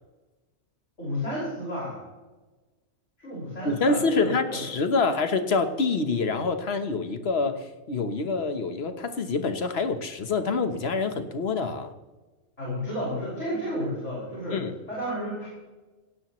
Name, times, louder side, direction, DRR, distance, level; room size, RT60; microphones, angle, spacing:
voice 1, 1.0-2.0 3.2-4.6 12.6-14.6 14.9-15.5, equal, 85° left, -6 dB, 6.3 m, -32 dB
voice 2, 3.6-11.9 14.5-14.7, left 4 dB, 60° left, 8 dB, 1.4 m, -26 dB
17.5 x 16.5 x 3.2 m, 1.2 s
omnidirectional pair, 1.2 m